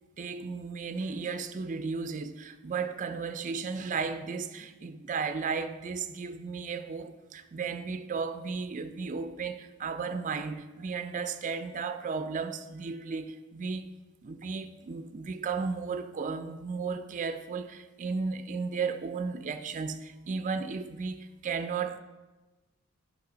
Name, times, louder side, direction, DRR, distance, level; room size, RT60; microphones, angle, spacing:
voice 1, 0.2-13.8 14.2-22.0, right 5 dB, 35° right, 0.4 m, -34 dB
10.5 x 5.1 x 3.8 m
head